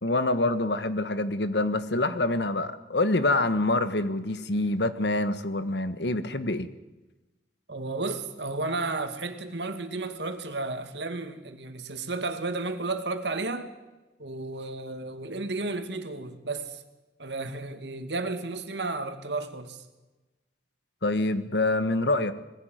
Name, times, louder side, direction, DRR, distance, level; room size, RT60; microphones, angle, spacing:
voice 1, 0.0-6.7 21.0-22.3, left 2 dB, 75° left, 12 dB, 1.4 m, -26 dB
voice 2, 7.7-13.7 14.2-16.8 17.2-19.8, right 3 dB, 75° right, 7 dB, 2.3 m, -33 dB
20.5 x 16.0 x 9.3 m, 1.1 s
head